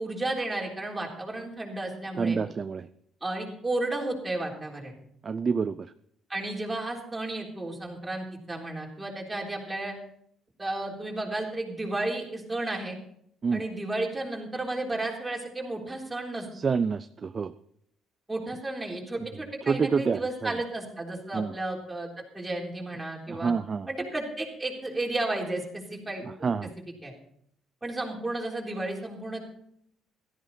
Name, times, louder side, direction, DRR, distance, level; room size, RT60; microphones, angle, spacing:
voice 1, 0.0-2.4 3.2-4.9 6.3-10.0 10.6-13.0 13.5-16.5 18.3-23.5 23.9-26.7 27.0-27.1 27.8-29.4, right 2 dB, 10° right, -1 dB, 3.8 m, -33 dB
voice 2, 2.2-2.9 5.2-5.9 13.4-13.6 16.5-17.5 19.7-20.5 21.3-21.5 23.3-23.9 26.4-26.7, right 5 dB, 30° right, 12 dB, 0.4 m, -27 dB
16.5 x 14.0 x 4.3 m, 0.68 s
cardioid pair, 135°, 0 cm